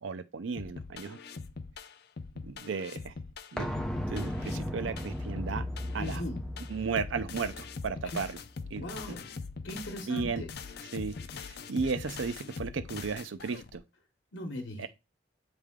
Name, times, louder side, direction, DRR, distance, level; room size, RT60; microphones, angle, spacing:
voice 1, 0.0-1.2 2.4-3.1 3.5-3.7 4.1-5.7 5.9-6.2 6.7-8.4 8.7-8.8 10.1-10.4 10.9-13.8 14.8-14.9, right 5 dB, 75° right, 0.5 m, -34 dB
sound 1, 0.6-13.8, left 4 dB, 55° left, 0.5 m, -42 dB
sound 2, 3.6-9.2 9.5-9.6, left 1 dB, 5° left, 0.6 m, -37 dB
voice 2, 6.0-6.4 8.0-8.2 8.7-9.3 9.6-10.5 14.3-14.9, left 1 dB, 70° left, 1.0 m, -39 dB
8.3 x 3.4 x 3.6 m
head